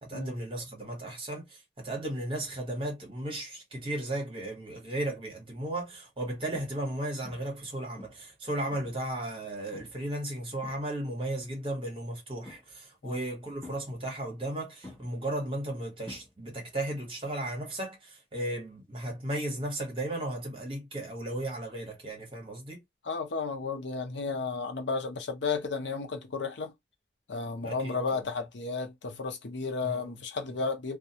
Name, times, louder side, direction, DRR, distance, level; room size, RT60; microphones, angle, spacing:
voice 1, 0.0-22.8 27.6-28.2 29.8-30.2, right 1 dB, 30° right, 1.0 m, -35 dB
sound 1, 5.2-5.3 5.8-5.9 6.5-7.0 7.2-7.7 8.0-9.1 9.7-10.1 10.4-11.3 12.4-13.0 13.6-14.5 14.8-16.7 17.0-17.4 19.5-19.6, left 2 dB, 10° left, 0.6 m, -50 dB
voice 2, 23.0-26.7 27.3-31.0, left 4 dB, 80° left, 0.7 m, -33 dB
2.3 x 2.2 x 2.7 m
head